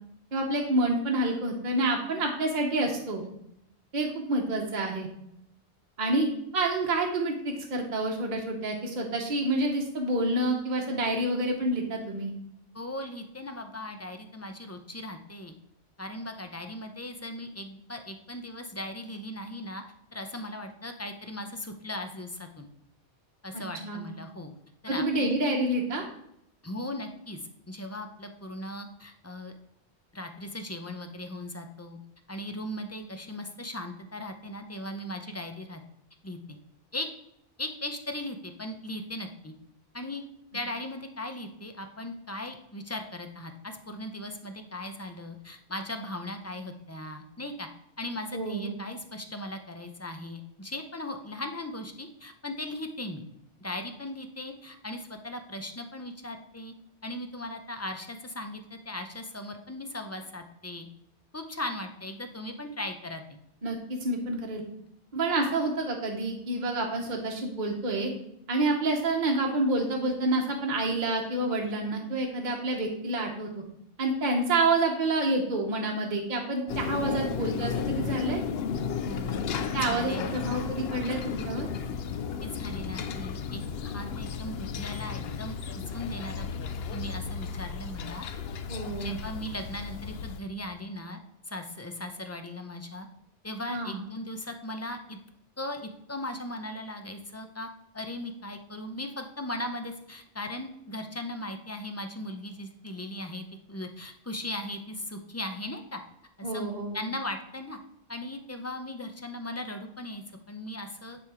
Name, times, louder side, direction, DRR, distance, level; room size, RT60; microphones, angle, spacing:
voice 1, 0.3-3.2 3.9-5.1 6.0-6.3 6.5-12.3 23.5-24.1 24.9-26.0 48.3-48.8 63.6-64.6 65.1-68.1 68.5-73.5 74.0-78.4 79.7-81.7 88.7-89.2 93.7-94.0 106.4-107.0, right 2 dB, 45° right, 0 dB, 1.0 m, -28 dB
voice 2, 12.7-15.5 16.0-19.8 20.1-22.7 23.4-24.5 24.8-25.3 26.6-27.4 27.7-29.5 30.1-32.0 32.3-35.8 36.2-36.4 36.9-37.1 37.6-39.5 39.9-40.2 40.5-47.7 48.0-53.2 53.6-56.7 57.0-60.9 61.3-63.4 79.0-79.6 79.8-80.4 82.4-85.6 85.9-86.5 86.9-88.3 89.0-91.2 91.5-93.1 93.4-95.2 95.6-97.7 97.9-106.0 106.4-106.7 106.9-107.8 108.1-111.2, left 1 dB, 20° left, 6 dB, 0.4 m, -38 dB
sound 1, 76.7-90.4, left 6 dB, 65° left, 0.8 m, -34 dB
9.4 x 3.4 x 4.8 m, 0.77 s
omnidirectional pair, 1.2 m